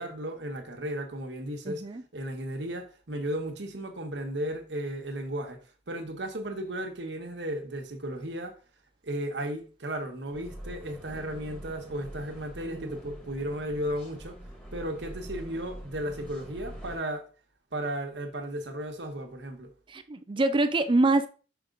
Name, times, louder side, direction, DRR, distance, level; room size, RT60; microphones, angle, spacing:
voice 1, 0.0-1.8 2.1-5.6 5.9-8.6 9.0-14.4 14.7-17.3 17.7-19.7, right 1 dB, 75° right, 1.3 m, -35 dB
voice 2, 1.7-2.0 12.7-13.0 19.9-21.3, right 2 dB, 30° right, 0.4 m, -25 dB
sound 1, 10.3-17.0, equal, 5° left, 2.0 m, -44 dB
5.8 x 5.0 x 3.9 m
head